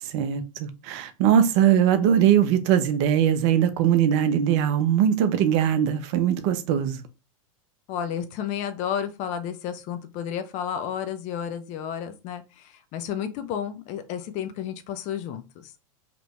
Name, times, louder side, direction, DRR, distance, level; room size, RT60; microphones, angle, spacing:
voice 1, 0.0-7.0, right 9 dB, 55° right, 0.6 m, -21 dB
voice 2, 7.9-15.7, left 9 dB, 40° left, 0.5 m, -32 dB
2.9 x 2.6 x 3.2 m
hypercardioid pair, 100°, 18 cm